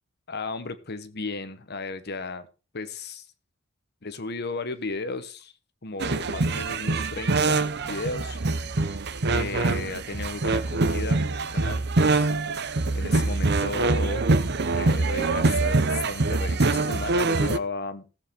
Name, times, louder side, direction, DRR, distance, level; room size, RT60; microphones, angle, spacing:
voice 1, 0.3-2.5 2.7-3.3 4.0-5.5 5.8-8.4 9.3-11.2 11.5-12.3 12.9-14.3 14.7-18.1, left 3 dB, 55° left, 11 dB, 1.1 m, -34 dB
sound 1, 6.0-17.6, right 3 dB, 55° right, 0.8 m, -24 dB
16.5 x 7.5 x 4.3 m, 0.33 s
head